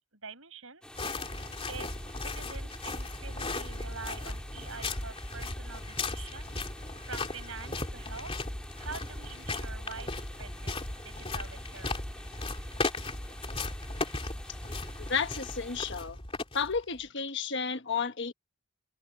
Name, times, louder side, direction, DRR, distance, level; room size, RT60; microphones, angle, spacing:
voice 1, 0.2-1.4 1.7-10.7 11.0-12.2, right 4 dB, 70° right, 7.3 m, -46 dB
sound 1, 0.8-15.9, left 1 dB, 5° left, 2.0 m, -50 dB
sound 2, 0.9-17.0, left 2 dB, 25° left, 3.0 m, -37 dB
voice 2, 15.0-16.2 16.5-18.3, left 5 dB, 55° left, 1.3 m, -32 dB
open air
head